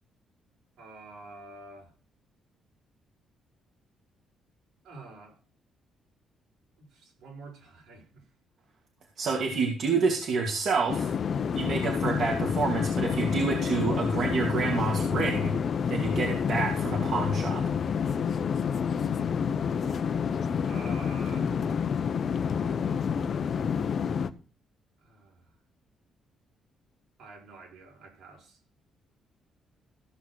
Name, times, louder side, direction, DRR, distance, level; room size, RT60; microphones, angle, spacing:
voice 1, 0.8-1.9 4.8-5.4 6.8-8.2 20.6-21.8 25.0-25.5 27.2-28.6, right 3 dB, 85° right, 5.9 m, -48 dB
voice 2, 9.2-11.1 11.5-15.6 15.9-17.7, right 4 dB, 65° right, 2.6 m, -28 dB
sound 1, 10.9-24.3, left 7 dB, 55° left, 0.9 m, -28 dB
15.5 x 6.1 x 6.4 m
cardioid pair, 90°, 0 cm